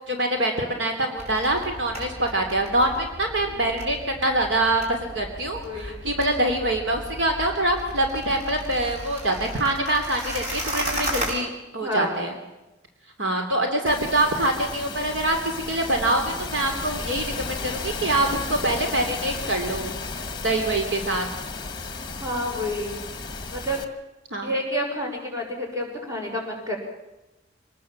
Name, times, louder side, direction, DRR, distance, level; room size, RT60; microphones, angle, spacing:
voice 1, 0.1-12.4 13.2-20.0 20.4-21.3 24.3-24.5, right 1 dB, 70° right, 3 dB, 3.1 m, -25 dB
sound 1, 1.2-11.3, equal, 35° right, 6.8 m, -35 dB
voice 2, 5.6-6.0 11.8-12.2 22.2-23.0 23.5-23.8 24.4-26.8, equal, 20° right, 0 dB, 6.2 m, -29 dB
sound 2, 13.8-23.8, left 4 dB, 25° left, 1.8 m, -34 dB
25.5 x 20.0 x 7.3 m, 0.99 s
head